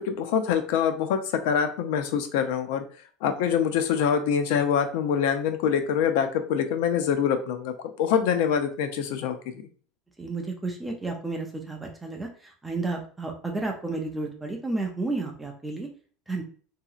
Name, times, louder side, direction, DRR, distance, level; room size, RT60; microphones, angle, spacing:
voice 1, 0.0-2.8 3.2-7.7 8.0-9.4, left 7 dB, 65° left, 8 dB, 0.4 m, -25 dB
voice 2, 10.2-15.9 16.3-16.4, right 3 dB, 5° right, 2 dB, 0.4 m, -32 dB
2.8 x 2.7 x 2.3 m, 0.42 s
cardioid pair, 180°, 0 cm